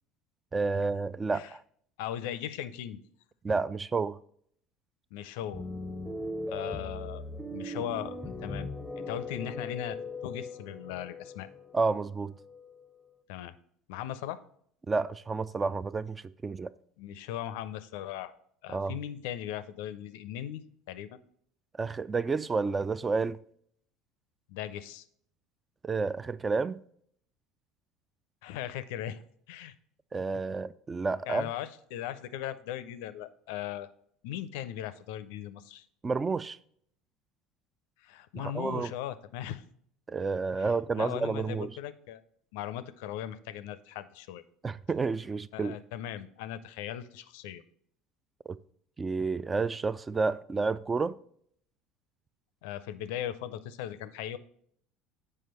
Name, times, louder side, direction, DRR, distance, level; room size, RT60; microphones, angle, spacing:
voice 1, 0.5-1.6 3.4-4.2 11.7-12.3 14.9-16.7 18.7-18.9 21.8-23.4 25.8-26.8 30.1-31.5 36.0-36.6 38.3-38.9 40.1-41.7 44.6-45.8 48.5-48.6 49.0-51.2, right 4 dB, 20° right, 0.3 m, -30 dB
voice 2, 2.0-3.0 5.1-5.6 6.5-7.2 7.5-8.7 9.0-11.5 13.3-13.6 13.9-14.4 17.0-18.3 18.6-21.1 24.5-25.0 28.4-29.2 29.5-29.7 31.3-33.9 34.2-35.8 38.0-39.6 40.6-42.2 42.5-44.4 45.5-47.6 52.6-54.4, left 11 dB, 60° left, 0.4 m, -38 dB
sound 1, 5.5-13.0, left 1 dB, 5° right, 0.8 m, -39 dB
7.7 x 4.9 x 4.2 m
figure-of-eight pair, 65°, 0 cm